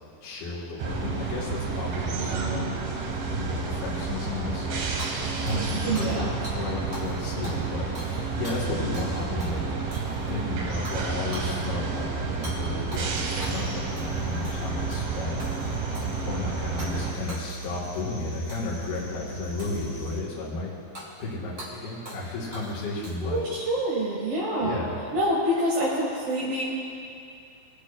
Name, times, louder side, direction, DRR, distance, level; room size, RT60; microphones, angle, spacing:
voice 1, 0.2-2.4 3.3-4.8 5.4-9.6 10.3-15.4 16.0-20.7 21.2-23.4 24.6-24.9, left 3 dB, 70° left, -6 dB, 3.3 m, -33 dB
sound 1, 0.8-17.1, right 4 dB, 70° right, 2.4 m, -30 dB
voice 2, 2.1-2.9 5.8-6.3 23.0-24.8 25.1-26.6, right 1 dB, 50° right, -8 dB, 2.0 m, -27 dB
Hammer / Shatter, 5.0-6.2 6.4-6.6 6.9-7.2 7.4-9.1 9.4-9.5 9.9-10.4 10.8-11.0 11.3-11.5 12.4-12.6 12.9-13.6 14.0-14.2 14.4-15.1 15.4-16.2 16.8-17.0 17.3-17.9 18.5-18.8 19.6-20.1 20.9-21.1 21.6-21.7 22.0-22.3 22.5-23.4, right 1 dB, 25° right, 1.7 m, -42 dB
sound 2, 13.4-20.2, right 2 dB, 45° left, 2.2 m, -40 dB
22.5 x 8.5 x 2.4 m, 2.5 s
omnidirectional pair, 4.6 m